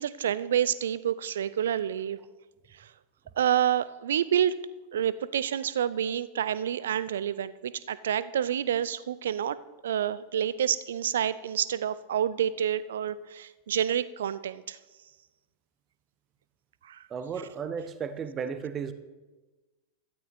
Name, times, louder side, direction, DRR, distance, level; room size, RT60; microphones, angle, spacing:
voice 1, 0.0-2.2 2.8-2.9 3.4-4.5 4.9-9.6 9.8-14.8 16.8-17.0, right 9 dB, 60° right, 18 dB, 0.5 m, -28 dB
voice 2, 17.1-18.9, right 6 dB, 25° right, 11 dB, 0.9 m, -34 dB
16.5 x 12.5 x 3.1 m, 1.2 s
figure-of-eight pair, 90°, 0 cm